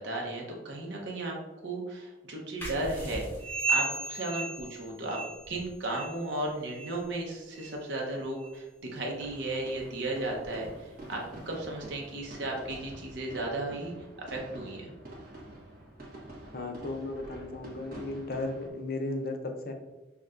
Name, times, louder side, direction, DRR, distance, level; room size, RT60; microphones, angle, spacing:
voice 1, 0.0-1.4 1.6-3.3 3.7-5.2 5.5-13.9 14.3-14.9, right 2 dB, 70° right, -1 dB, 0.9 m, -35 dB
sound 1, 2.6-13.9, equal, 10° left, 0.7 m, -49 dB
sound 2, 3.4-5.6 5.9-6.3 6.7-7.0 7.6-7.7 8.4-8.5 9.3-9.4, right 3 dB, 25° right, 0.5 m, -34 dB
sound 3, 8.9-18.7, right 1 dB, 50° right, 1.1 m, -47 dB
voice 2, 16.5-19.7, left 2 dB, 55° left, 5 dB, 0.5 m, -35 dB
5.8 x 2.3 x 2.5 m, 1.1 s
head